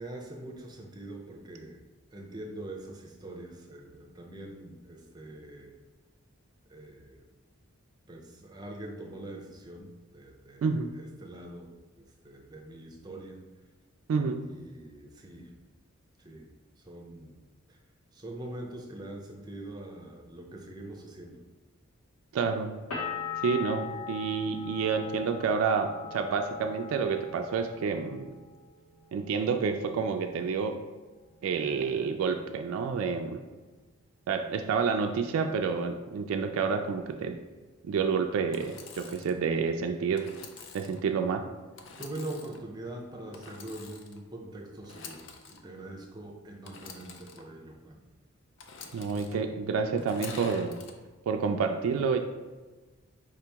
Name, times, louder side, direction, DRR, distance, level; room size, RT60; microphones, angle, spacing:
voice 1, 0.0-1.8 2.1-5.7 6.7-7.3 8.1-10.7 10.9-11.7 12.0-13.4 14.4-15.5 16.2-16.5 16.8-17.3 17.7-17.8 18.1-21.4 42.0-48.0, right 1 dB, 20° right, 1 dB, 0.5 m, -43 dB
voice 2, 10.6-11.0 14.1-14.5 22.3-22.7 23.4-28.3 29.1-30.8 31.4-33.4 34.3-37.4 37.8-40.3 40.7-41.4 48.9-50.8 51.3-52.2, right 5 dB, 75° right, 5 dB, 0.3 m, -29 dB
sound 1, 22.9-28.5 28.8-29.6, left 6 dB, 90° left, 1.1 m, -40 dB
Engine / Sawing, 38.5-39.4 40.2-41.0 41.8-42.6 43.3-44.2 44.8-45.6 46.6-47.4 48.6-49.4 50.0-50.9, left 5 dB, 60° left, 0.4 m, -47 dB
4.9 x 2.9 x 3.4 m, 1.3 s
head